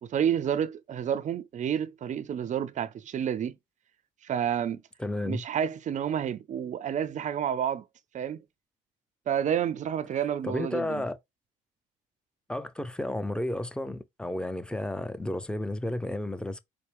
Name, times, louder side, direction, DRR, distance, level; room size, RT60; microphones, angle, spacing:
voice 1, 0.0-3.6 4.2-4.8 5.2-7.8 8.1-8.4 9.3-11.0, right 9 dB, 45° right, 0.5 m, -29 dB
voice 2, 5.0-5.4 10.4-11.2 12.5-16.6, left 1 dB, 5° left, 0.6 m, -32 dB
4.3 x 2.1 x 3.4 m
supercardioid pair, 70°, 17 cm